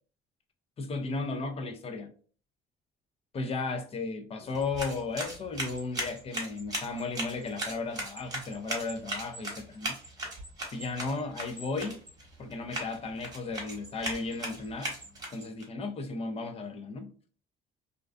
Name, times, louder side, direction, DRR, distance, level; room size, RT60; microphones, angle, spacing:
voice 1, 0.8-2.1 3.3-10.0 10.7-12.0 12.4-15.0 15.3-17.1, left 3 dB, 35° left, 0.5 m, -35 dB
sound 1, 4.5-15.6, right 1 dB, 25° right, 1.0 m, -38 dB
2.4 x 2.2 x 2.3 m
cardioid pair, 110°, 17 cm